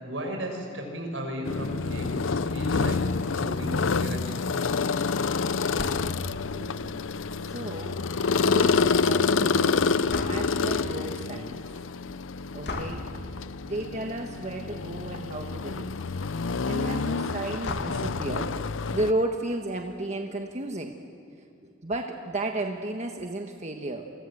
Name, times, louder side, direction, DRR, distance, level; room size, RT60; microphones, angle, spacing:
voice 1, 0.0-3.0 3.3-4.4, equal, 75° right, 3 dB, 6.4 m, -35 dB
sound 1, 1.5-19.1, left 4 dB, 90° left, 0.7 m, -28 dB
sound 2, 5.7-6.3 10.1-10.7 12.6-13.1 14.3-14.6 15.0-15.1 15.3-15.4 17.6-18.2, left 1 dB, 60° left, 2.6 m, -36 dB
voice 2, 6.5-7.1 7.5-8.2 8.4-9.8 10.2-11.6 12.5-13.1 13.6-16.0 16.6-21.0 21.4-24.1, right 1 dB, 35° right, 3 dB, 1.4 m, -33 dB
29.0 x 25.0 x 7.9 m, 2.5 s
head